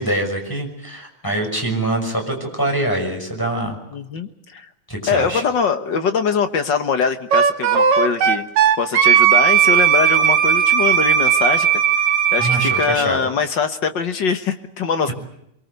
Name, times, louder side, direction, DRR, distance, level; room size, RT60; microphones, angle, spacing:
voice 1, 0.0-3.8 4.9-5.4 12.4-13.2 15.1-15.2, right 1 dB, 5° left, 1 dB, 6.0 m, -24 dB
voice 2, 3.9-4.7 5.1-8.5 8.8-11.8 12.3-15.1, left 6 dB, 55° left, 9 dB, 1.3 m, -22 dB
Wind instrument woodwind instrument, 7.3-12.9, right 8 dB, 70° right, 2.8 m, -16 dB
24.0 x 23.5 x 8.2 m, 0.80 s
omnidirectional pair, 3.4 m